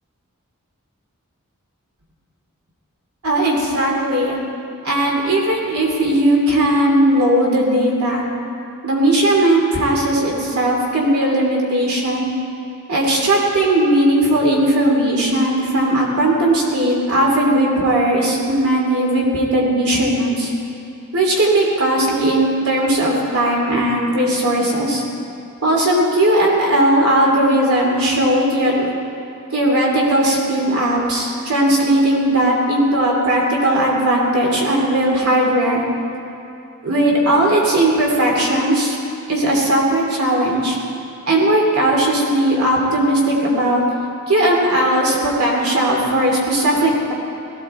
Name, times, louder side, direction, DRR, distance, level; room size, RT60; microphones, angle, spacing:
voice 1, 3.2-4.4 4.8-8.2 8.8-12.3 12.9-20.5 21.1-25.0 25.6-28.9 29.5-35.8 36.8-39.0 39.3-40.8 41.3-43.8 44.3-47.1, right 1 dB, 85° right, -2 dB, 2.8 m, -17 dB
18.0 x 16.0 x 4.4 m, 2.8 s
head